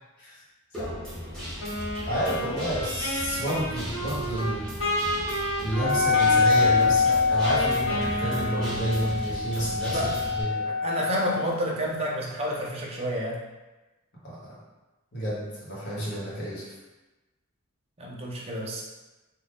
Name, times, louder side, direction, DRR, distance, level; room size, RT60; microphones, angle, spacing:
Guitar, 0.7-10.4, equal, 5° left, 1.0 m, -37 dB
Wind instrument woodwind instrument, 1.6-9.3, equal, 80° left, 1.2 m, -32 dB
voice 1, 2.1-4.7 5.6-10.6 14.2-14.6 15.1-16.7, equal, 55° left, -8 dB, 1.1 m, -30 dB
Wind instrument woodwind instrument 2, 5.7-11.5, left 4 dB, 25° left, 1.2 m, -25 dB
voice 2, 9.9-10.3 10.6-13.4 18.0-18.8, equal, 30° right, -3 dB, 0.5 m, -30 dB
2.5 x 2.4 x 3.4 m, 1.1 s
head